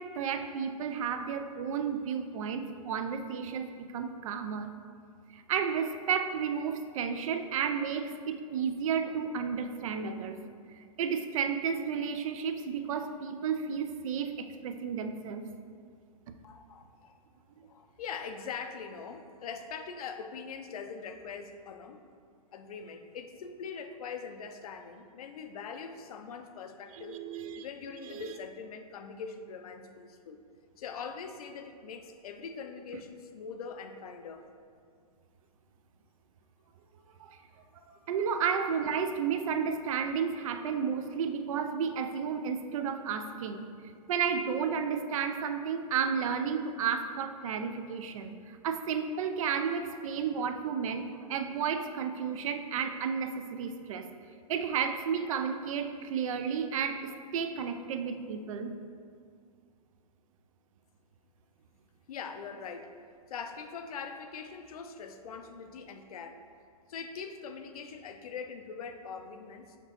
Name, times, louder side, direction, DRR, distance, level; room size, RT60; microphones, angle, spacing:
voice 1, 0.0-4.7 5.3-10.4 10.8-15.4 26.9-27.7 28.1-28.3 37.2-37.4 38.1-43.7 44.1-48.3 48.6-54.1 54.5-58.7, right 7 dB, 60° right, 7 dB, 0.4 m, -32 dB
voice 2, 16.4-17.2 17.6-22.0 22.5-27.2 27.5-30.4 30.8-34.5 37.9-38.2 62.1-63.0 63.3-66.4 66.9-69.8, left 6 dB, 70° left, 7 dB, 0.4 m, -42 dB
5.8 x 2.8 x 2.9 m, 2.2 s
hypercardioid pair, 140°, 20 cm